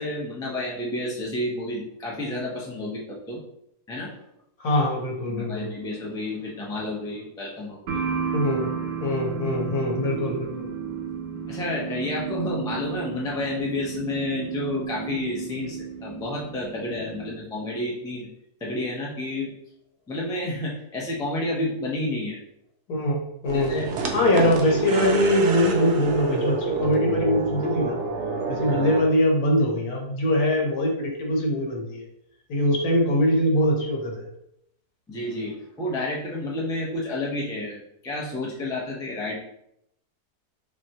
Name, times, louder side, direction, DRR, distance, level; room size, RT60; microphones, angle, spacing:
voice 1, 0.0-3.4 3.9-4.1 5.3-8.0 9.4-9.5 11.5-18.3 18.6-19.5 20.1-22.4 23.5-23.9 24.9-25.1 35.1-39.3, left 2 dB, 5° left, -4 dB, 0.3 m, -30 dB
voice 2, 4.6-5.7 8.3-8.7 9.0-10.7 22.9-23.7 24.1-28.0 28.5-32.1 32.5-34.3, left 1 dB, 65° left, -1 dB, 1.4 m, -23 dB
sound 1, 7.9-17.4, right 6 dB, 85° right, 1.3 m, -33 dB
sound 2, 23.4-29.0, right 3 dB, 70° right, 0.6 m, -27 dB
6.0 x 2.2 x 2.9 m, 0.76 s
omnidirectional pair, 1.8 m